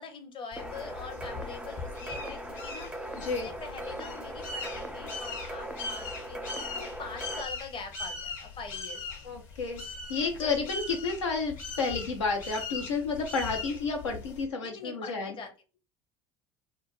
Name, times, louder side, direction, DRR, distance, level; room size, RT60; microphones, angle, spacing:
voice 1, 0.0-2.9 3.2-9.2 10.4-10.5 11.0-11.2 13.6-13.8 14.6-15.5, left 5 dB, 35° left, 5 dB, 0.8 m, -43 dB
sound 1, 0.5-14.4, left 4 dB, 60° left, 1.3 m, -40 dB
sound 2, 0.6-7.4, right 1 dB, 5° right, 0.4 m, -40 dB
voice 2, 3.2-3.5 9.2-9.8 10.1-15.4, left 4 dB, 90° left, 1 dB, 0.7 m, -31 dB
2.4 x 2.2 x 3.1 m, 0.31 s
hypercardioid pair, 75°, 15 cm